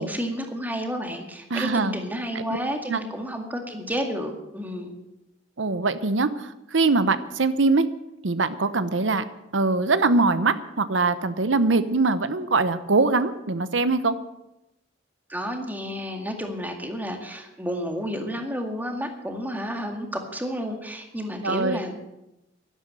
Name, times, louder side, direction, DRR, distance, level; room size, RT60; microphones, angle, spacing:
voice 1, 0.0-4.9 15.3-21.9, equal, 10° right, 4 dB, 2.0 m, -31 dB
voice 2, 1.5-2.0 2.3-2.4 2.9-3.0 5.6-7.9 8.2-9.2 9.5-14.2 21.4-21.8, right 3 dB, 85° right, 13 dB, 0.9 m, -22 dB
11.5 x 11.5 x 7.9 m, 0.92 s
head